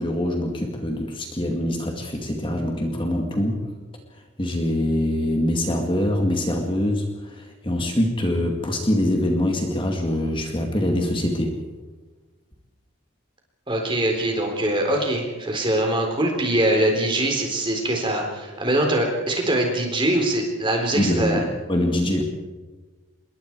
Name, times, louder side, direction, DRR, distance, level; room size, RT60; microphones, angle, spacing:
voice 1, 0.0-3.6 4.4-11.6 20.9-22.2, left 1 dB, 25° left, 2 dB, 2.1 m, -24 dB
voice 2, 13.7-21.4, right 1 dB, 25° right, 2 dB, 4.0 m, -23 dB
27.0 x 22.0 x 4.7 m, 1.3 s
head